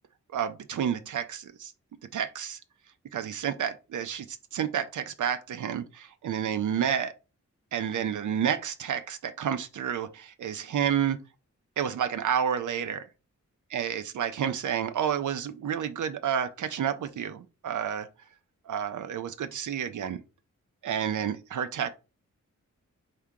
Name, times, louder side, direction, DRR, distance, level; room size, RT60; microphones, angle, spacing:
voice 1, 0.3-1.7 2.1-2.6 3.1-7.1 7.7-11.2 11.8-13.1 13.7-18.1 18.7-20.2 20.8-21.9, right 8 dB, 80° right, 0.5 m, -30 dB
3.6 x 2.7 x 4.6 m
wide cardioid pair, 95°, 30 cm